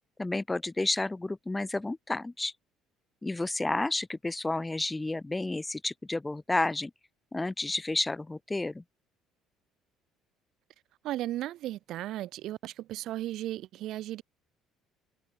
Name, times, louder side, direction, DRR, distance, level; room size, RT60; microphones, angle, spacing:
voice 1, 0.2-2.5 3.2-6.9 7.3-8.8, left 2 dB, 10° left, 1.0 m, -31 dB
voice 2, 11.0-14.2, right 14 dB, 60° right, 2.4 m, -35 dB
cardioid pair, 125°, 0 cm